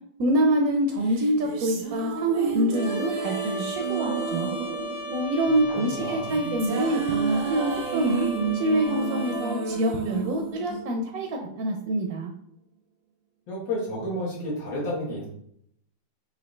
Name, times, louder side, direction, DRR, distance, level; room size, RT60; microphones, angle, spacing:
voice 1, 0.2-4.6 5.1-8.3 8.5-12.3, right 1 dB, 70° right, 2 dB, 0.9 m, -26 dB
sound 1, 1.1-11.5, right 5 dB, 85° right, 1.5 m, -31 dB
Trumpet, 2.7-9.6, right 2 dB, 70° left, 1.7 m, -36 dB
voice 2, 5.7-6.3 13.5-15.3, left 1 dB, 90° left, -6 dB, 2.2 m, -31 dB
5.3 x 2.7 x 3.1 m, 0.71 s
omnidirectional pair, 2.1 m